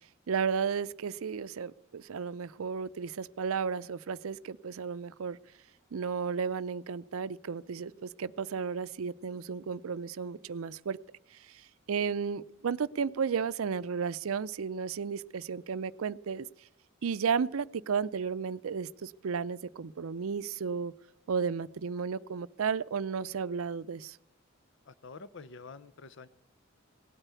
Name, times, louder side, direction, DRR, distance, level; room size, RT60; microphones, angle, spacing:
voice 1, 0.3-5.4 5.9-11.0 11.3-16.5 17.0-20.9 21.3-24.2, right 6 dB, 80° right, 14 dB, 0.5 m, -33 dB
voice 2, 24.9-26.3, left 4 dB, 60° left, 15 dB, 0.6 m, -47 dB
18.0 x 9.0 x 8.2 m, 0.78 s
head